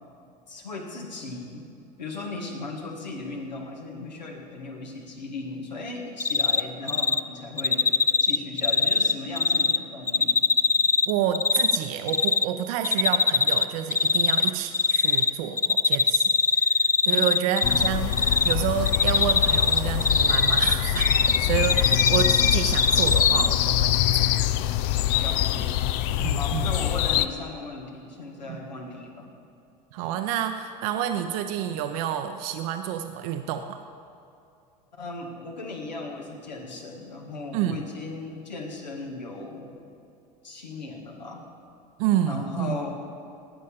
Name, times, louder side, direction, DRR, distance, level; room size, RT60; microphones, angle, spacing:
voice 1, 0.5-1.7 2.0-7.9 8.2-10.4 17.1-17.3 21.9-22.0 25.2-25.8 26.3-29.3 35.0-39.7 40.4-41.4 42.3-42.9, left 3 dB, 90° left, 0 dB, 2.2 m, -37 dB
Cricket, 6.2-6.6 6.9-7.2 7.6-9.8 10.1-11.8 12.1-12.4 12.8-13.6 13.9-15.3 15.6-17.9 18.1-18.5 18.9-21.4 21.6-23.5, left 4 dB, 15° left, 0.4 m, -21 dB
voice 2, 11.1-21.1 21.4-24.3 26.2-26.7 28.5-28.6 29.9-33.8 37.5-37.8 42.0-42.7, right 10 dB, 60° right, 6 dB, 0.8 m, -29 dB
sound 1, 17.6-27.3, left 13 dB, 55° left, 0.6 m, -24 dB
17.5 x 6.6 x 8.5 m, 2.6 s
hypercardioid pair, 80°, 21 cm